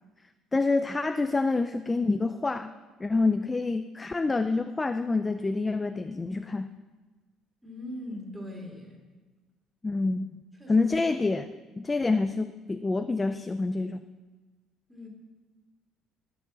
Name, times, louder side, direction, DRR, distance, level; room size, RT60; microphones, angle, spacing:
voice 1, 0.5-2.7 3.0-6.7 9.8-10.3 10.7-11.5 11.8-14.0, left 3 dB, 15° left, 10 dB, 0.4 m, -27 dB
voice 2, 7.6-9.0 10.6-10.9 14.9-15.1, left 1 dB, 5° right, 0 dB, 3.3 m, -40 dB
20.0 x 7.0 x 7.3 m, 1.3 s
cardioid pair, 155°, 0 cm